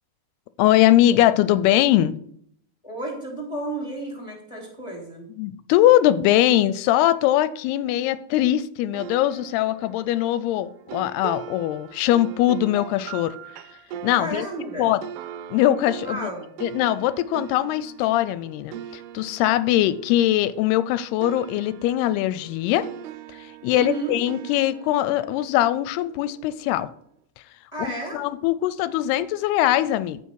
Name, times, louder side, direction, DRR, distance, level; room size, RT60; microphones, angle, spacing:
voice 1, 0.6-2.2 5.4-13.4 14.0-14.5 14.8-15.0 15.5-16.3 16.6-22.9 23.4-26.9 27.8-30.2, left 13 dB, 85° left, 15 dB, 2.5 m, -21 dB
voice 2, 2.8-5.3 14.2-14.9 16.0-16.5 23.7-24.2 27.7-28.2, right 2 dB, 10° left, -2 dB, 2.6 m, -32 dB
sound 1, 8.9-20.9 21.2-26.4, right 9 dB, 85° right, 2.7 m, -41 dB
14.0 x 5.8 x 4.7 m, 0.67 s
omnidirectional pair, 4.7 m